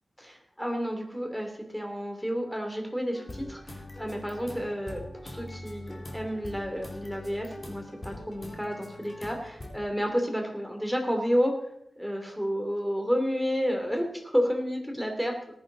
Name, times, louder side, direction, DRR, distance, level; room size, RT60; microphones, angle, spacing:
voice 1, 0.2-11.5 12.0-15.3, equal, ahead, 2 dB, 3.0 m, -30 dB
sound 1, 3.1-9.8, left 1 dB, 30° left, 2.7 m, -43 dB
18.5 x 10.5 x 4.0 m, 0.74 s
wide cardioid pair, 105°, 0 cm